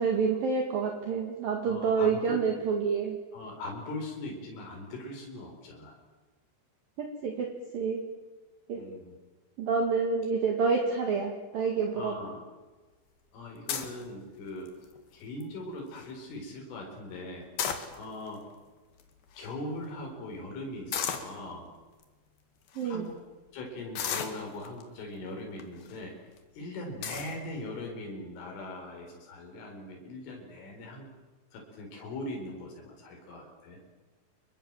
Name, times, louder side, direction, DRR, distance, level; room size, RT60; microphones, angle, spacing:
voice 1, 0.0-3.2 7.0-7.5 7.7-8.0 8.7-8.8 9.6-12.1 22.8-23.1, right 5 dB, 55° right, 2 dB, 3.6 m, -28 dB
voice 2, 1.7-2.4 3.3-6.0 8.8-9.2 12.0-12.4 13.3-14.7 15.1-17.5 17.9-18.4 19.4-21.7 22.8-23.2 23.5-26.1 26.6-31.1 31.5-33.8, left 2 dB, 80° left, 0 dB, 7.0 m, -40 dB
sound 1, 13.7-14.0 14.7-15.0 15.4-15.5 15.7-16.1 17.4-18.3 19.0-19.1 19.3-19.5 20.9-21.3 22.0-22.1 22.7-22.9 24.0-24.8 25.6-25.9 26.4-26.5 27.0-27.4, left 8 dB, 55° left, 3.6 m, -33 dB
28.0 x 22.5 x 7.6 m, 1.3 s
omnidirectional pair, 5.6 m